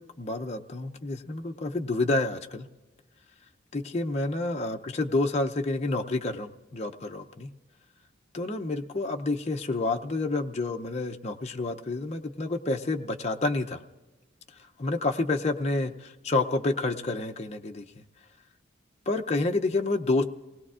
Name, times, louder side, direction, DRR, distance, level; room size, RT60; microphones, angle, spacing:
voice 1, 0.0-2.7 3.7-7.5 8.3-13.8 14.8-17.8 19.1-20.2, left 2 dB, 35° left, 2 dB, 0.6 m, -29 dB
28.5 x 19.5 x 2.4 m, 1.2 s
head